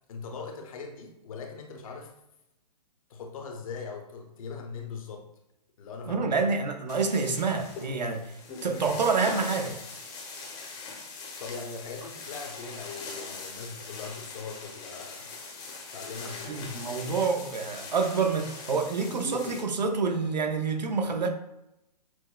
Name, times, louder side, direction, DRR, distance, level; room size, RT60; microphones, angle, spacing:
voice 1, 0.1-2.1 3.1-5.3 5.8-6.3 8.6-8.9 11.4-15.3 15.9-16.8, left 5 dB, 55° left, 3 dB, 0.8 m, -40 dB
voice 2, 6.1-8.3 8.6-9.8 16.5-21.3, right 4 dB, 90° right, 5 dB, 0.7 m, -27 dB
sound 1, 6.9-19.6, left 3 dB, 20° left, 0.7 m, -41 dB
6.0 x 2.1 x 2.2 m, 0.87 s
hypercardioid pair, 135°, 21 cm